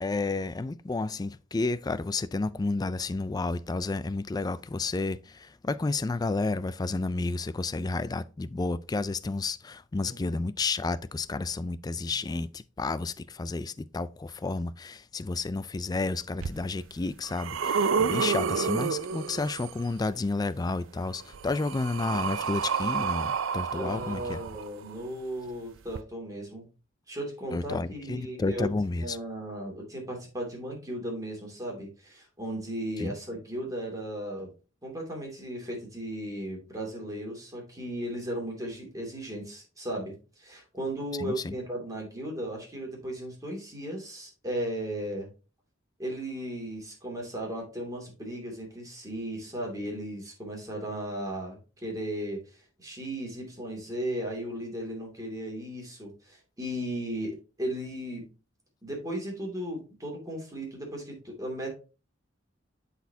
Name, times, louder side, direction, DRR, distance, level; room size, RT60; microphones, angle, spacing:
voice 1, 0.0-24.4 27.5-29.2 33.0-33.2 41.2-41.6, left 3 dB, 20° left, 0.3 m, -31 dB
sound 1, 16.4-16.5 17.1-19.8 21.0-24.9 25.9-26.0, right 6 dB, 80° right, 0.4 m, -30 dB
voice 2, 23.7-26.7 27.1-28.7 29.0-34.5 34.8-45.3 46.0-52.4 52.8-58.2 58.8-61.7, right 1 dB, 20° right, 2.5 m, -36 dB
12.0 x 4.2 x 2.8 m
head